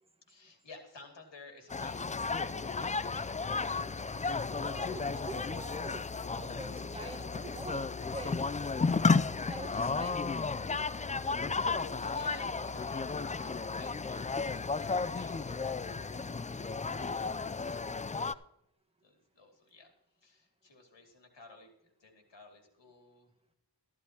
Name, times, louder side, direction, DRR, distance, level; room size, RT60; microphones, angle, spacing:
voice 1, 0.3-3.4 6.9-7.3 11.2-18.3 19.0-23.3, left 3 dB, 80° left, 3 dB, 2.3 m, -55 dB
sound 1, 1.7-18.3, left 4 dB, 20° left, 0.3 m, -33 dB
voice 2, 4.5-6.1 6.4-7.8 8.1-8.4 9.3-10.3, right 2 dB, 15° right, 5 dB, 1.3 m, -45 dB
13.5 x 12.0 x 2.8 m, 0.80 s
cardioid pair, 50°, 43 cm